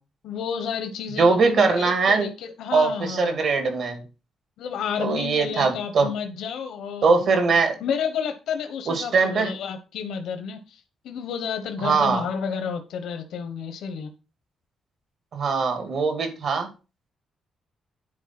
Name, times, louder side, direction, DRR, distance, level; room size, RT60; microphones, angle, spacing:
voice 1, 0.2-3.4 4.6-7.4 7.8-14.1, left 7 dB, 85° left, 7 dB, 1.1 m, -31 dB
voice 2, 1.2-2.3 2.7-4.0 5.0-6.1 7.0-7.8 8.9-9.5 11.8-12.2 15.3-16.7, right 4 dB, 55° right, 5 dB, 2.5 m, -21 dB
10.0 x 4.6 x 6.0 m, 0.32 s
cardioid pair, 160°, 0 cm